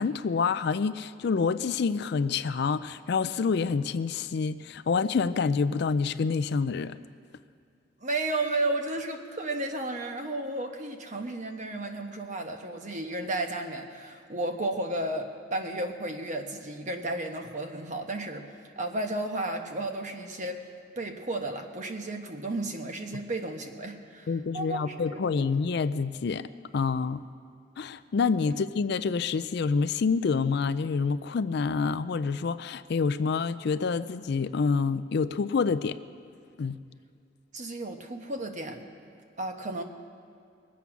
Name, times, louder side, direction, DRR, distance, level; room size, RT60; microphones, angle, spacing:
voice 1, 0.0-7.0 24.3-26.5 26.7-27.2 27.8-36.0 36.6-36.8, left 5 dB, 55° left, 13 dB, 0.4 m, -27 dB
voice 2, 8.0-18.5 18.8-20.6 21.0-25.5 28.5-28.6 37.5-38.8 39.4-39.8, right 2 dB, 40° right, 4 dB, 1.1 m, -33 dB
22.0 x 8.3 x 6.0 m, 2.4 s
head